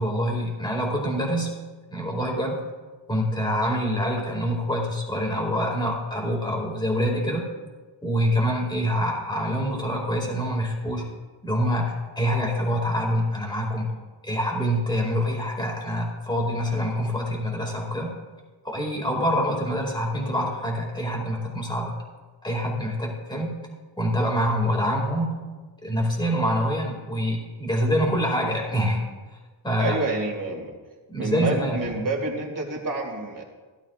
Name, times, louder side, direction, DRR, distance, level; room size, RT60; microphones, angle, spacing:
voice 1, 0.0-1.6 1.9-2.6 3.1-7.5 8.0-11.0 11.4-13.9 14.2-18.2 18.6-21.9 22.4-23.6 24.0-25.4 25.8-29.0 29.6-30.0 31.1-31.8, equal, 10° left, 0 dB, 2.3 m, -25 dB
voice 2, 29.8-30.7 31.2-33.4, right 2 dB, 45° right, 0 dB, 2.4 m, -28 dB
16.5 x 11.5 x 2.5 m, 1.3 s
wide cardioid pair, 155°, 46 cm